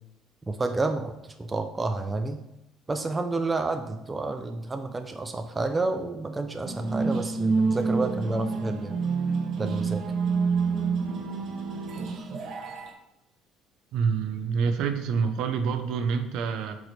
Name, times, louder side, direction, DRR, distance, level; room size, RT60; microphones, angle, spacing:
voice 1, 0.5-2.4 2.9-9.0 9.6-10.0, right 3 dB, 15° right, 6 dB, 0.5 m, -30 dB
sound 1, 6.6-12.9, right 4 dB, 45° right, 1.0 m, -28 dB
voice 2, 13.9-16.8, right 5 dB, 65° right, 7 dB, 0.8 m, -27 dB
8.1 x 4.8 x 3.3 m, 0.92 s
cardioid pair, 145°, 0 cm